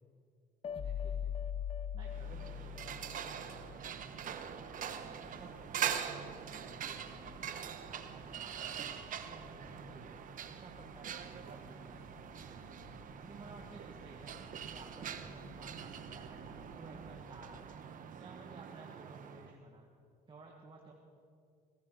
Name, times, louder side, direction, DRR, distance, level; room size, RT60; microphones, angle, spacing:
sound 1, 0.6-3.8, left 8 dB, 35° left, 0.4 m, -40 dB
voice 1, 0.8-1.5 1.9-4.5 5.0-7.4 7.8-8.7 9.1-12.8 13.2-17.6 18.2-19.9 20.3-20.9, right 3 dB, 30° right, -1 dB, 1.8 m, -55 dB
sound 2, 2.1-19.5, right 8 dB, 50° right, 1.1 m, -43 dB
sound 3, 3.5-17.7, left 3 dB, 90° left, 1.5 m, -59 dB
20.5 x 17.5 x 4.0 m, 2.3 s
cardioid pair, 110°, 17 cm